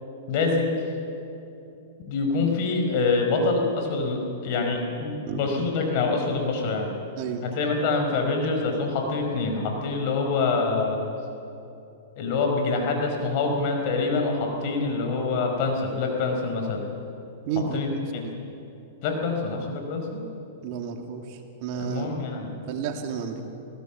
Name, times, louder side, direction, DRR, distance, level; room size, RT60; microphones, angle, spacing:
voice 1, 0.3-0.7 2.1-6.9 7.5-11.0 12.2-16.8 17.7-17.9 18.1-18.3 19.0-20.2 21.7-22.5, left 3 dB, 50° left, 3 dB, 5.1 m, -25 dB
voice 2, 5.2-5.6 7.2-7.4 17.5-18.3 20.6-22.2 22.7-23.4, right 6 dB, 50° right, 4 dB, 2.5 m, -32 dB
24.0 x 16.5 x 7.4 m, 2.8 s
hypercardioid pair, 130°, 0 cm